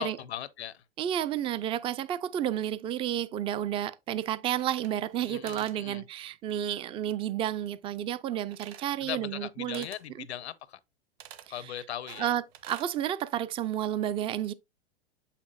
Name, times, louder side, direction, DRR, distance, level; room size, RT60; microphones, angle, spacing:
voice 1, 0.0-0.8 5.2-6.0 9.0-10.8 11.5-12.3, left 11 dB, 90° left, 0.7 m, -38 dB
voice 2, 1.0-9.9 10.2-10.3 11.6-11.7 12.2-14.5, right 11 dB, 20° right, 0.3 m, -31 dB
sound 1, 4.5-5.2 5.5-5.8 8.5-9.0 9.7-10.1 11.2-11.5 12.1-12.9, right 11 dB, 45° right, 1.1 m, -48 dB
7.1 x 5.8 x 2.3 m
hypercardioid pair, 120°, 32 cm